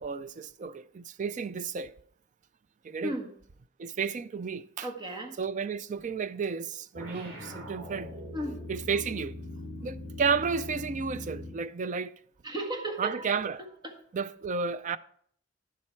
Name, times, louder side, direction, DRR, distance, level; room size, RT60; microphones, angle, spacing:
voice 1, 0.0-1.9 2.8-3.1 3.8-4.9 5.4-8.1 8.7-9.3 9.8-12.1 13.0-13.6 14.1-15.0, right 5 dB, 40° right, 0.4 m, -32 dB
voice 2, 4.8-5.3 8.3-8.6 12.4-13.3 13.8-13.9, right 1 dB, 25° right, 1.4 m, -35 dB
sound 1, 6.9-11.7, left 1 dB, 75° right, 3.0 m, -41 dB
10.5 x 7.3 x 4.5 m
head